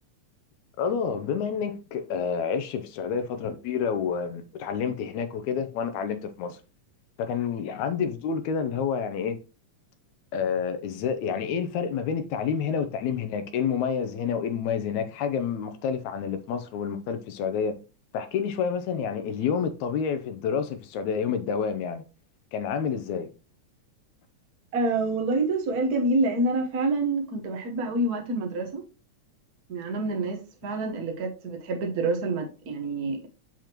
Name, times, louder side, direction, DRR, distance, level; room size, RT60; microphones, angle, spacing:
voice 1, 0.8-6.6 7.2-9.4 10.3-17.7 18.1-22.0 22.5-23.3, left 6 dB, 75° left, 2.0 m, -29 dB
voice 2, 24.7-28.8 29.7-33.3, right 2 dB, 75° right, 0.8 m, -27 dB
7.0 x 6.0 x 2.9 m
omnidirectional pair, 3.5 m